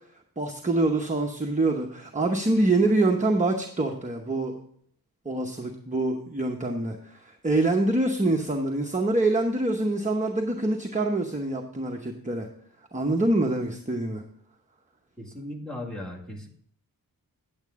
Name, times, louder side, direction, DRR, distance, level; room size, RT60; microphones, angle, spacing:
voice 1, 0.4-4.5 5.2-12.5 12.9-14.2, right 2 dB, 20° right, 2 dB, 0.9 m, -25 dB
voice 2, 15.2-16.5, left 1 dB, ahead, -3 dB, 2.0 m, -37 dB
9.5 x 8.8 x 3.6 m, 0.63 s
wide cardioid pair, 125°, 37 cm